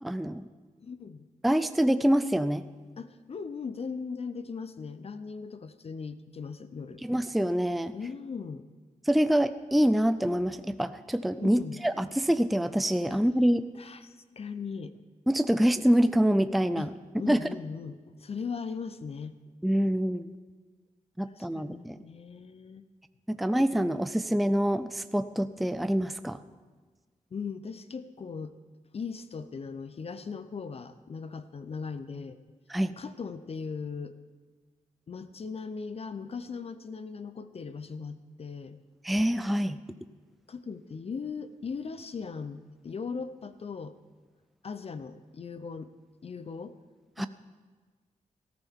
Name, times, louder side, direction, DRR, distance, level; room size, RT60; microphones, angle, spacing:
voice 1, 0.0-0.4 1.4-2.6 7.0-7.9 9.1-13.7 15.3-16.9 17.3-17.5 19.6-20.3 21.2-22.0 23.3-26.4 32.7-32.9 39.0-39.8 47.2-47.3, equal, ahead, 11 dB, 0.4 m, -26 dB
voice 2, 0.8-1.3 3.0-7.0 7.9-8.7 11.4-11.8 13.1-13.2 13.7-15.0 16.8-19.4 21.4-22.8 27.3-28.6 28.9-32.4 33.0-34.2 35.1-38.8 40.5-44.0 44.6-45.9 46.2-46.8 47.2-47.3, left 5 dB, 45° left, 12 dB, 0.6 m, -39 dB
18.5 x 13.5 x 3.6 m, 1.4 s
wide cardioid pair, 105°, 14 cm